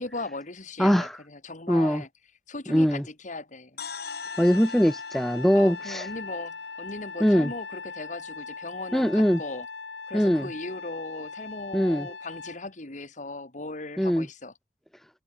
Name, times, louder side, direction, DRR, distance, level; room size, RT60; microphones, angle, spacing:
voice 1, 0.0-2.1 2.5-3.8 5.5-9.7 10.1-14.5, left 2 dB, 45° left, 2.5 m, -38 dB
voice 2, 0.8-1.2 1.7-2.0 2.7-3.0 4.4-6.1 7.2-7.5 8.9-9.4 10.1-10.5 11.7-12.1 14.0-14.3, equal, ahead, 0.4 m, -22 dB
sound 1, 3.8-7.7, left 6 dB, 60° left, 3.8 m, -44 dB
Trumpet, 4.0-12.6, left 4 dB, 85° left, 5.0 m, -40 dB
head